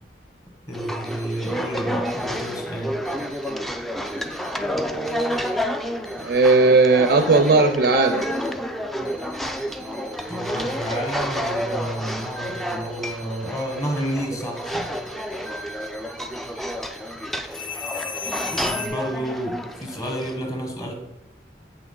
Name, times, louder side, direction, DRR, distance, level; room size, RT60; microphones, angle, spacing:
voice 1, 0.7-3.0 10.3-14.9 18.5-20.9, right 1 dB, 20° left, 2 dB, 1.3 m, -30 dB
sound 1, 0.7-20.4, equal, ahead, 0.4 m, -30 dB
sound 2, 1.1-1.5 2.1-2.5 3.1-3.5 4.1-4.5 5.1-5.5 6.1-6.5 7.1-7.5 8.1-8.5 9.1-18.9, left 4 dB, 65° left, 1.9 m, -40 dB
voice 2, 6.2-8.3, right 3 dB, 60° right, 7 dB, 0.5 m, -17 dB
7.9 x 6.0 x 3.8 m, 0.94 s
head